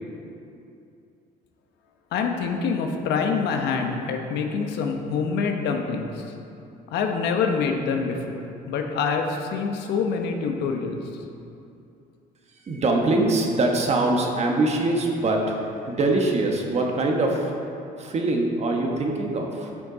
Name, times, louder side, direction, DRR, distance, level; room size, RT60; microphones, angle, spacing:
voice 1, 2.1-6.2 6.9-11.0, left 5 dB, 80° left, 3 dB, 1.0 m, -26 dB
voice 2, 12.6-15.6 15.8-17.5 18.0-19.7, right 2 dB, 40° right, 1 dB, 1.3 m, -23 dB
11.5 x 6.2 x 4.0 m, 2.6 s
cardioid pair, 110°, 17 cm